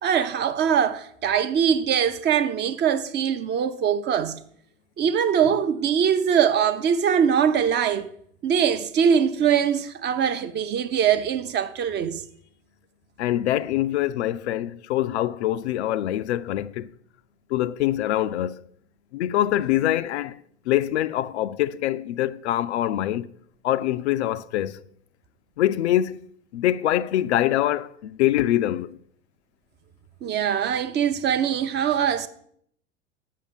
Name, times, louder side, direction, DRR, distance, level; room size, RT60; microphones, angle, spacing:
voice 1, 0.0-4.4 5.0-8.1 8.4-12.2 30.2-32.3, right 8 dB, 30° right, 0.6 m, -22 dB
voice 2, 13.2-16.9 17.5-18.6 19.1-20.4 20.7-23.3 23.6-24.8 25.6-26.2 26.5-29.0, left 13 dB, 65° left, 0.5 m, -24 dB
7.5 x 5.0 x 6.8 m
figure-of-eight pair, 80°, 36 cm